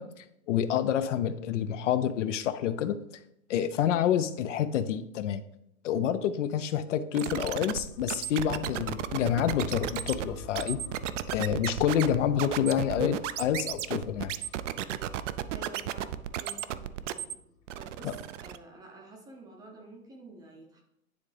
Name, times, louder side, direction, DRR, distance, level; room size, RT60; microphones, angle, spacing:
voice 1, 0.0-3.0 3.5-5.4 5.8-10.8 11.3-14.3 18.0-18.1, left 9 dB, 60° left, 12 dB, 0.5 m, -28 dB
sound 1, 7.1-17.3 17.7-18.6, right 12 dB, 60° right, 0.5 m, -34 dB
sound 2, 7.9-17.9, left 4 dB, 85° left, 1.2 m, -47 dB
voice 2, 15.5-17.4 17.8-20.8, right 2 dB, 10° right, 0 dB, 0.6 m, -49 dB
9.8 x 3.6 x 3.3 m, 0.80 s
hypercardioid pair, 145°, 43 cm